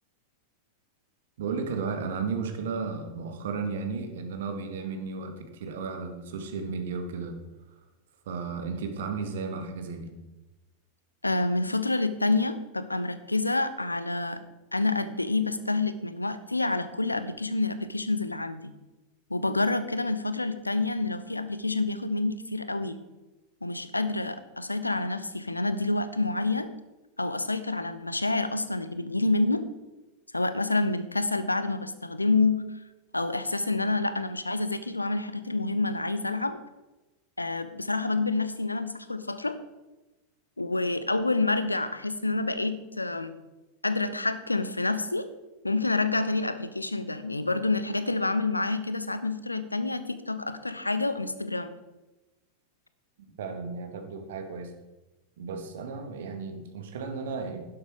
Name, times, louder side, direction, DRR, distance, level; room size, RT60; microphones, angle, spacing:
voice 1, 1.4-7.4 8.3-10.1 53.4-54.7 55.4-57.6, right 5 dB, 60° right, 5 dB, 2.0 m, -34 dB
voice 2, 11.2-14.4 14.7-18.7 19.3-23.0 23.6-26.7 27.2-29.6 30.3-32.8 33.1-36.6 37.4-39.6 40.6-43.3 43.8-45.3 45.6-51.7, left 2 dB, 85° left, 12 dB, 0.9 m, -28 dB
12.0 x 11.0 x 4.9 m, 1.1 s
figure-of-eight pair, 90°, 0 cm